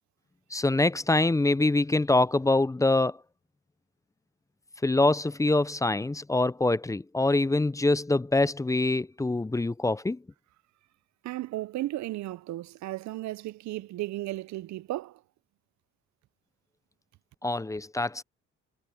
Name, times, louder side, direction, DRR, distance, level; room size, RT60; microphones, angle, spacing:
voice 1, 0.5-3.2 4.8-10.2 17.4-18.2, left 2 dB, 10° left, 0.5 m, -25 dB
voice 2, 11.2-15.2, right 16 dB, 70° right, 0.6 m, -35 dB
cardioid pair, 90°, 30 cm